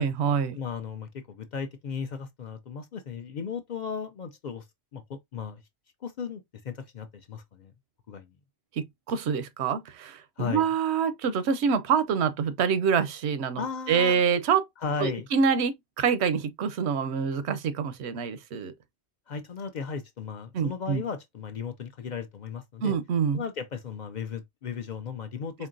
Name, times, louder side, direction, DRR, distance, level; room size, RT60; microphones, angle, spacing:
voice 1, 0.0-0.6 8.8-14.6 15.0-18.7 20.5-21.0 22.8-23.4, right 6 dB, 90° right, 0.9 m, -26 dB
voice 2, 0.5-4.7 4.9-5.6 6.0-7.7 8.1-8.3 10.4-10.7 13.6-14.1 14.8-15.3 19.3-22.9 23.3-25.7, left 6 dB, 55° left, 0.6 m, -35 dB
4.3 x 2.8 x 2.5 m
omnidirectional pair, 1.1 m